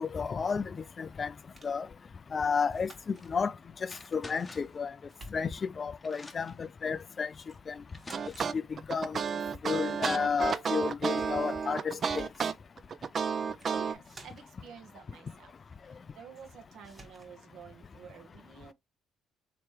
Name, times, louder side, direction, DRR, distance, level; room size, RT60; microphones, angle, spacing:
voice 1, 0.0-1.3 1.6-1.9 2.3-3.5 3.8-4.9 5.3-7.3 7.7-7.8 8.5-9.2 9.6-12.3, left 5 dB, 40° left, 0.3 m, -32 dB
sound 1, 1.6-1.8 2.7-3.3 4.4-4.8 5.1-5.8 7.4-7.6 7.9-8.5 11.6-11.7 12.0-12.5 13.4-13.7 14.0-14.6 16.4-16.5 16.8-17.3, right 2 dB, 30° right, 1.3 m, -53 dB
sound 2, 3.1-3.4 3.9-4.8 5.6-5.7 6.0-6.6 7.4-7.5 7.9-8.6 9.9-10.0 10.3-10.7, left 2 dB, 25° left, 0.7 m, -50 dB
sound 3, 8.1-13.9, right 6 dB, 50° right, 0.3 m, -31 dB
voice 2, 13.7-15.5 15.8-18.7, right 7 dB, 70° right, 0.8 m, -50 dB
3.3 x 2.9 x 3.1 m
supercardioid pair, 60°, 0 cm